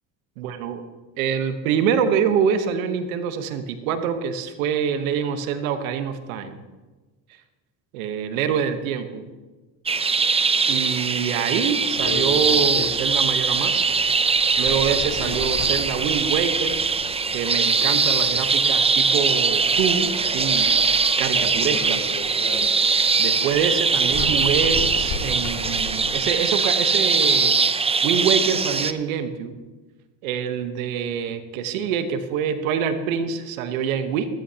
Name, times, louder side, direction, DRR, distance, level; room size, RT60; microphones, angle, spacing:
voice 1, 0.4-0.8 1.2-6.6 7.9-9.3 10.7-14.0 14.6-16.8 17.3-22.1 23.2-27.5 28.0-29.5 30.2-34.3, right 7 dB, 90° right, 9 dB, 1.2 m, -25 dB
sound 1, 9.9-28.9, right 4 dB, 15° right, 0.6 m, -21 dB
sound 2, 11.9-26.4, left 4 dB, 60° left, 3.1 m, -35 dB
15.5 x 15.0 x 2.9 m, 1.2 s
supercardioid pair, 80°, 40 cm